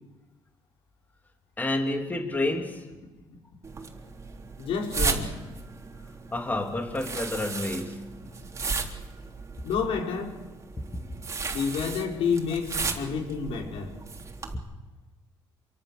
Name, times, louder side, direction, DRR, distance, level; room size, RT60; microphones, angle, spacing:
voice 1, 1.6-2.9 6.3-8.1, left 2 dB, 20° left, 2 dB, 3.1 m, -29 dB
sound 1, 3.6-14.5, right 4 dB, 30° right, 3.6 m, -35 dB
voice 2, 4.6-5.4 9.6-10.4 11.0-11.2 11.5-13.9, left 6 dB, 75° left, 0 dB, 5.8 m, -29 dB
27.5 x 24.5 x 6.8 m, 1.2 s
cardioid pair, 105°, 10 cm